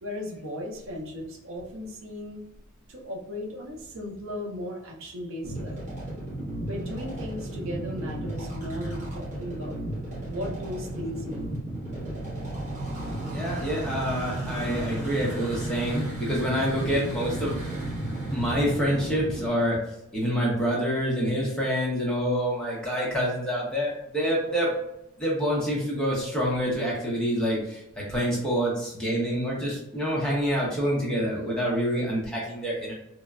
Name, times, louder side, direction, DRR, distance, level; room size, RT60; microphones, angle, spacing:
voice 1, 0.0-2.4 2.9-5.9 6.7-9.8 10.3-11.5, left 1 dB, 60° right, -1 dB, 0.5 m, -36 dB
sound 1, 5.4-19.5, right 1 dB, 35° right, 1.1 m, -34 dB
voice 2, 13.3-17.6 18.3-19.8 20.1-24.7 25.2-32.9, equal, 5° left, -5 dB, 0.7 m, -27 dB
3.0 x 2.1 x 2.3 m, 0.82 s
head